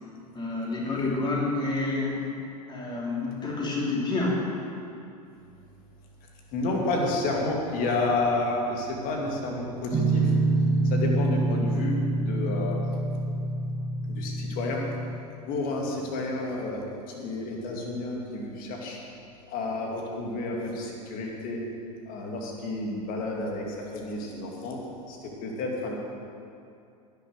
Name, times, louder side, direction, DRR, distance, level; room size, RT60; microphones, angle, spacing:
voice 1, 0.3-2.2 2.7-4.4, left 2 dB, 20° left, -4 dB, 3.4 m, -28 dB
voice 2, 6.5-10.3 10.8-12.8 14.1-14.8 15.5-16.9 17.2-19.0 19.5-21.6 22.1-24.8 25.1-26.0, left 2 dB, 45° left, 0 dB, 2.7 m, -30 dB
Guitar, 9.9-15.2, right 2 dB, 20° right, 1.4 m, -26 dB
10.5 x 10.0 x 6.6 m, 2.5 s
figure-of-eight pair, 85°, 21 cm